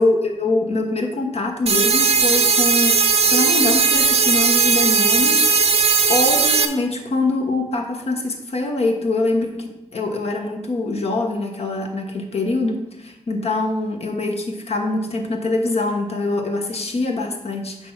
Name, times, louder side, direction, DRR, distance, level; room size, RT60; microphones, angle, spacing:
voice 1, 0.0-5.7 6.1-17.9, left 2 dB, 60° left, 3 dB, 1.1 m, -24 dB
sound 1, 1.7-6.7, right 5 dB, 65° right, 0.7 m, -17 dB
6.0 x 4.5 x 5.7 m, 0.92 s
cardioid pair, 70°, 12 cm